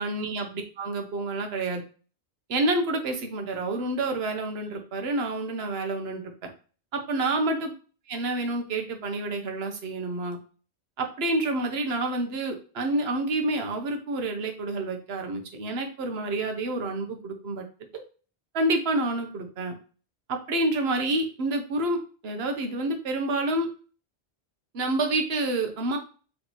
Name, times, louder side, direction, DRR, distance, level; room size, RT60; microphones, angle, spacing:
voice 1, 0.0-1.8 2.5-6.2 6.9-7.7 8.1-10.4 11.0-17.6 17.9-18.0 18.5-19.7 20.3-23.7 24.7-26.0, right 2 dB, 70° right, 4 dB, 1.0 m, -28 dB
4.0 x 3.2 x 3.0 m, 0.39 s
omnidirectional pair, 1.1 m